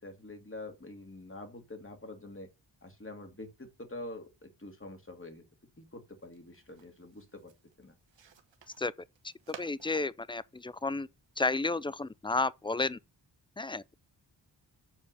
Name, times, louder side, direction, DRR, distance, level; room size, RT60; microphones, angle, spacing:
voice 1, 0.0-2.5 2.8-5.4 5.8-7.5 7.8-7.9, left 2 dB, 30° left, 2.7 m, -46 dB
sound 1, 5.9-11.4, right 7 dB, 80° right, 1.3 m, -55 dB
voice 2, 9.2-11.1 11.4-13.0 13.6-13.9, left 3 dB, 10° left, 0.4 m, -32 dB
7.4 x 4.6 x 6.7 m
cardioid pair, 65°, 44 cm